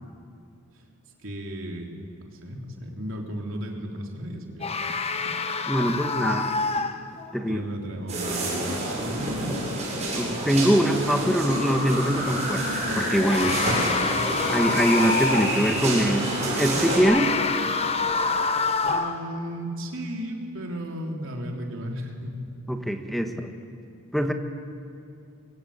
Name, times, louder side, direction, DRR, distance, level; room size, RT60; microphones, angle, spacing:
voice 1, 1.2-5.3 5.9-6.4 7.5-9.6 18.8-22.4, equal, 65° right, 1 dB, 3.6 m, -35 dB
sound 1, 4.6-7.4 11.6-11.8 13.0-15.7 16.8-19.3, left 4 dB, 30° left, 1.1 m, -27 dB
voice 2, 5.7-6.5 7.3-7.6 10.1-13.6 14.5-17.3 22.7-23.5 24.1-24.3, equal, ahead, 5 dB, 1.5 m, -23 dB
sound 2, 8.1-17.0, right 1 dB, 30° right, 7.9 m, -29 dB
sound 3, 9.0-16.4, left 1 dB, 45° left, 7.3 m, -34 dB
24.0 x 23.5 x 8.8 m, 2.4 s
head